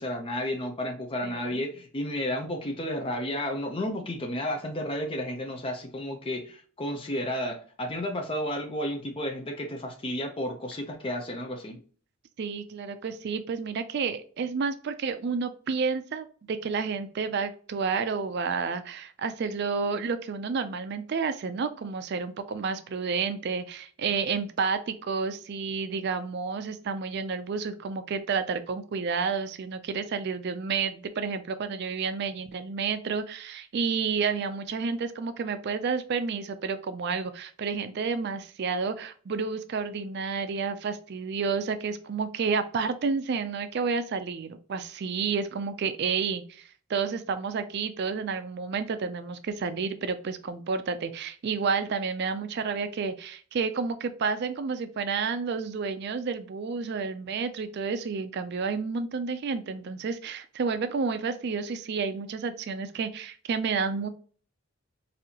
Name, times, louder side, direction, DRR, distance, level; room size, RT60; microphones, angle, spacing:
voice 1, 0.0-11.8, left 1 dB, 25° left, 3 dB, 0.5 m, -32 dB
voice 2, 1.2-1.6 12.4-64.1, right 5 dB, 50° right, 10 dB, 0.4 m, -30 dB
4.1 x 2.7 x 2.8 m, 0.43 s
head